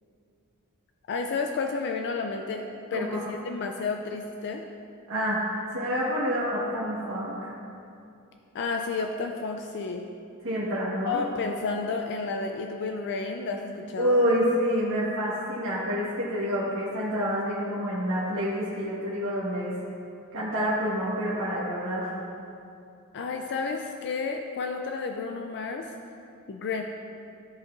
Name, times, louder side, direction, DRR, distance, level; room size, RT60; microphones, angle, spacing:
voice 1, 1.1-2.7 2.9-4.6 8.5-10.0 11.1-14.2 23.1-25.9 26.5-26.8, left 4 dB, 50° left, 3 dB, 0.4 m, -31 dB
voice 2, 2.9-3.2 5.1-5.4 5.7-7.5 10.4-11.2 14.0-19.7 20.3-22.1, equal, 60° right, -9 dB, 1.4 m, -27 dB
13.0 x 5.3 x 2.5 m, 2.6 s
head